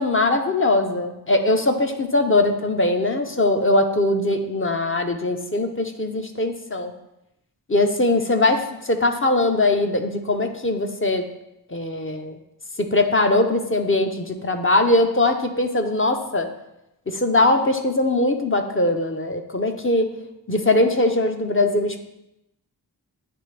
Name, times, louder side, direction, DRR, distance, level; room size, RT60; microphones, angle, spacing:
voice 1, 0.0-6.9 7.7-11.2 11.7-12.3 12.8-16.5 17.1-20.1 20.5-22.0, left 2 dB, 30° left, 5 dB, 0.6 m, -21 dB
9.3 x 3.4 x 3.2 m, 0.86 s
wide cardioid pair, 55°, 43 cm